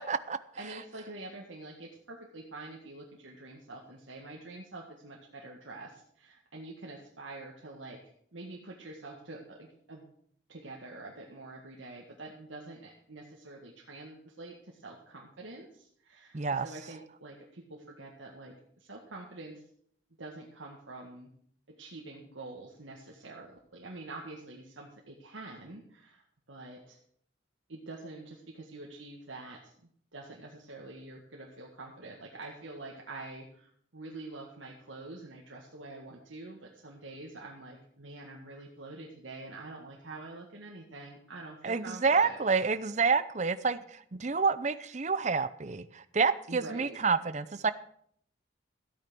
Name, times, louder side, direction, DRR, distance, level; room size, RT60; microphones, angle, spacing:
voice 1, 0.0-0.4 16.3-16.7 41.6-47.7, right 5 dB, 40° right, 14 dB, 0.6 m, -28 dB
voice 2, 0.6-8.0 8.3-10.0 10.5-19.6 20.2-21.3 21.7-26.2 26.5-27.0 27.7-29.7 30.1-42.6 46.5-47.0, right 2 dB, 85° right, -1 dB, 1.7 m, -46 dB
13.5 x 8.8 x 6.0 m, 0.64 s
head